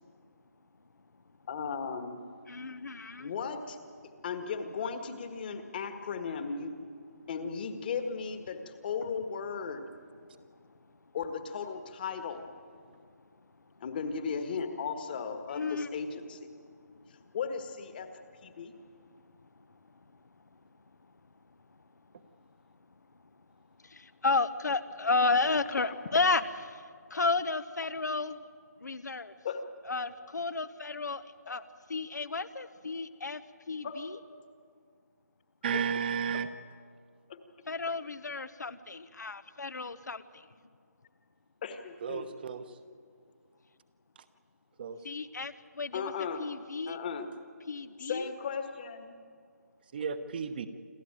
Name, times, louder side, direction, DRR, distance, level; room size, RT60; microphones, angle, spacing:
voice 1, 1.5-2.2 3.2-3.8 4.2-6.8 7.3-9.8 11.1-12.4 13.8-16.5 17.3-18.1 18.4-18.7 25.8-25.9 29.4-29.6 33.8-34.0 37.3-37.4 41.6-42.3 45.9-46.4 46.9-47.3 48.0-49.1, left 6 dB, 30° left, 8 dB, 1.6 m, -36 dB
voice 2, 2.5-3.3 9.0-9.1 15.5-15.9 23.8-26.4 26.7-26.8 27.1-28.4 28.8-29.3 29.9-31.6 31.9-33.4 33.7-34.2 37.7-40.5 45.0-46.1 46.4-47.0 47.7-48.3, left 3 dB, 80° left, 13 dB, 1.1 m, -32 dB
voice 3, 35.6-36.5 42.0-42.8 44.8-45.0 49.9-50.7, right 7 dB, 35° right, 11 dB, 1.1 m, -33 dB
27.0 x 13.5 x 9.0 m, 2.1 s
figure-of-eight pair, 160°, 9 cm